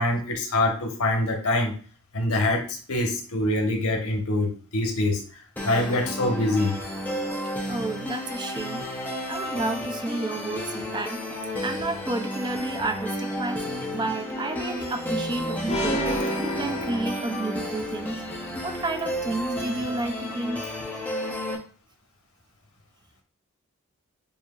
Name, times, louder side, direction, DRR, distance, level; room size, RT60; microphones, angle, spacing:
voice 1, 0.0-1.7 2.1-5.2 5.6-6.8, left 1 dB, 85° left, 2 dB, 1.2 m, -24 dB
sound 1, 5.6-21.6, equal, 10° left, 0.7 m, -32 dB
voice 2, 7.7-16.1 16.4-18.2 18.5-20.6, right 2 dB, 20° right, 6 dB, 0.4 m, -31 dB
sound 2, 15.7-17.7, equal, 30° left, 1.0 m, -29 dB
7.2 x 2.8 x 2.4 m, 0.42 s
head